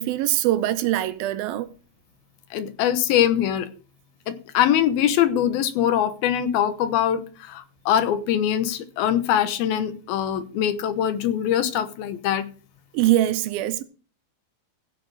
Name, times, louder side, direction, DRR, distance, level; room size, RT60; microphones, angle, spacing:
voice 1, 0.0-1.7 12.9-13.8, right 14 dB, 80° right, 2.4 m, -22 dB
voice 2, 2.5-3.7 4.3-12.5, left 10 dB, 80° left, 2.8 m, -23 dB
15.5 x 7.6 x 4.8 m
omnidirectional pair, 4.4 m